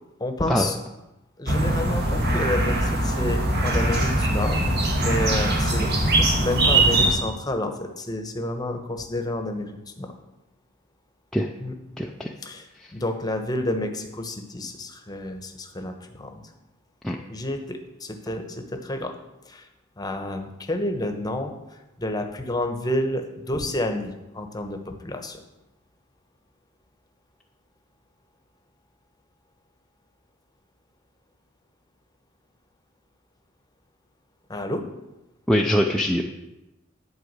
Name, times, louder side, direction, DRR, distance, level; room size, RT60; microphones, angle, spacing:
voice 1, 0.2-0.7 1.4-4.7 5.0-9.7 10.0-10.1 11.6-11.7 12.4-12.6 12.9-16.4 17.3-19.1 19.5-19.6 20.0-21.5 22.0-25.4 34.5-34.8, left 1 dB, 20° left, 5 dB, 1.0 m, -29 dB
sound 1, 1.5-7.1, right 1 dB, 50° right, 1.9 m, -21 dB
voice 2, 12.0-12.3 12.8-12.9 17.0-17.2 35.5-36.2, equal, ahead, -1 dB, 0.5 m, -23 dB
11.0 x 4.9 x 8.1 m, 0.97 s
head